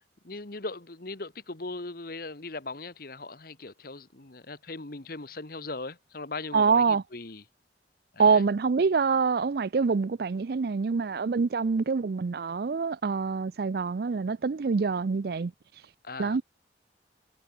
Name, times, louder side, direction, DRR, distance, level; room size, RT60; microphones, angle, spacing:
voice 1, 0.2-7.4 8.1-8.4 16.0-16.4, left 3 dB, 55° left, 1.6 m, -39 dB
voice 2, 6.5-7.0 8.2-15.5 16.2-16.4, right 5 dB, 60° right, 0.4 m, -25 dB
head